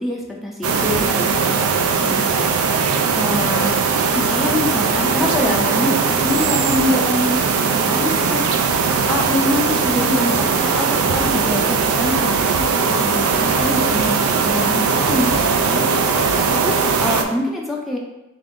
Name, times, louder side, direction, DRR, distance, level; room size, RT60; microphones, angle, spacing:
voice 1, 0.0-2.2 3.1-3.8 4.1-15.9 16.5-18.0, left 1 dB, ahead, -2 dB, 0.5 m, -25 dB
sound 1, 0.6-17.2, right 5 dB, 85° right, 0.4 m, -19 dB
3.4 x 2.5 x 3.6 m, 0.97 s
head